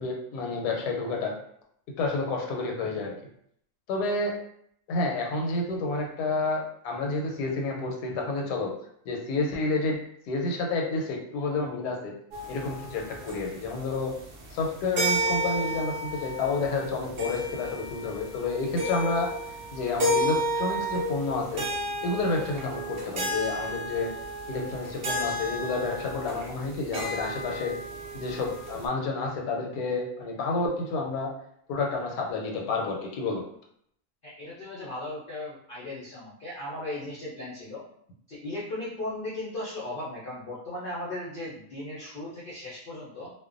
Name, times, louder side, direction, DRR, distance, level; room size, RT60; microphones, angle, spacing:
voice 1, 0.0-1.3 2.0-3.1 3.9-4.3 4.9-8.7 9.0-10.0 10.2-12.1 12.5-14.1 14.5-19.3 19.7-21.6 22.0-24.1 24.5-27.7 28.1-31.3 31.7-33.4, left 3 dB, 85° left, 0 dB, 1.1 m, -29 dB
sound 1, 12.3-28.9, equal, 85° right, 0.5 m, -32 dB
voice 2, 34.2-37.8 38.3-43.3, left 1 dB, 60° left, -7 dB, 0.5 m, -37 dB
2.5 x 2.1 x 2.4 m, 0.68 s
omnidirectional pair, 1.7 m